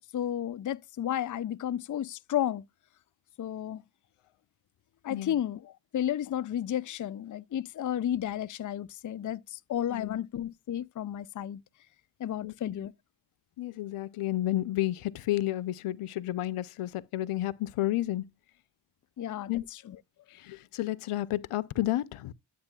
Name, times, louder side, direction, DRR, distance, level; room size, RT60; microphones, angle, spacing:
voice 1, 0.1-2.6 3.4-3.8 5.0-11.6 12.2-12.9 19.2-20.0, left 11 dB, 40° left, 0.4 m, -32 dB
voice 2, 5.1-5.4 9.9-10.2 12.4-12.8 13.6-18.3 19.5-19.6 20.3-22.3, left 15 dB, 85° left, 0.6 m, -31 dB
10.5 x 8.2 x 2.3 m
cardioid pair, 55°, 49 cm